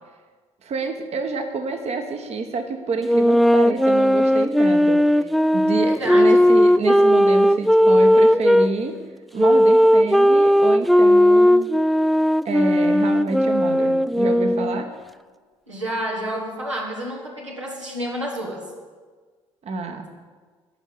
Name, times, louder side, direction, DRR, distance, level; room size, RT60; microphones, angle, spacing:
voice 1, 0.6-9.0 9.3-11.7 12.4-14.9 19.6-20.1, right 4 dB, 45° right, 6 dB, 1.0 m, -28 dB
sound 1, 3.0-8.7 9.4-14.9, equal, ahead, 0.3 m, -16 dB
voice 2, 5.8-6.4 15.7-18.7, equal, 90° right, -3 dB, 1.3 m, -29 dB
11.0 x 5.5 x 8.6 m, 1.5 s
figure-of-eight pair, 45°, 15 cm